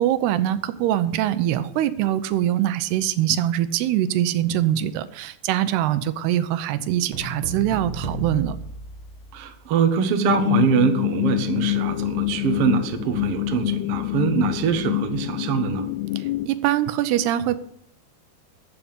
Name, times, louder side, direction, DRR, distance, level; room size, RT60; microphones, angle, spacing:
voice 1, 0.0-8.6 16.2-17.6, right 12 dB, 85° right, 13 dB, 2.9 m, -23 dB
sound 1, 7.1-9.7, right 3 dB, 45° right, 1.8 m, -33 dB
voice 2, 9.3-15.9, right 7 dB, 65° right, 7 dB, 1.5 m, -23 dB
sound 2, 10.3-16.5, left 16 dB, 85° left, 2.7 m, -25 dB
13.5 x 7.3 x 8.7 m, 0.70 s
omnidirectional pair, 4.6 m